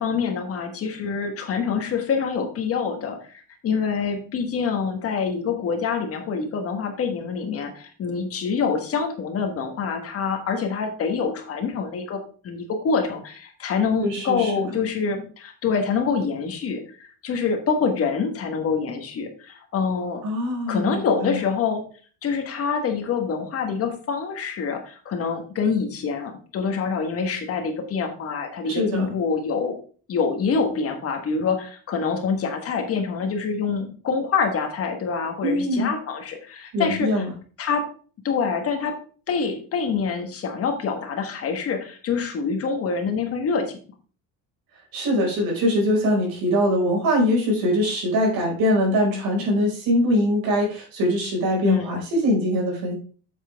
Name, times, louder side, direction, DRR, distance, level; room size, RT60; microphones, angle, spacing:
voice 1, 0.0-20.2 20.7-21.8 22.2-29.7 30.1-37.2 37.6-37.9 38.2-39.0 39.3-43.8 51.6-52.0, left 5 dB, 35° left, 5 dB, 1.4 m, -26 dB
voice 2, 14.0-14.8 20.2-21.4 28.6-29.1 35.4-35.9 36.7-37.3 44.9-52.9, equal, 65° right, -1 dB, 5.0 m, -22 dB
8.7 x 7.4 x 3.4 m, 0.41 s
cardioid pair, 180°, 38 cm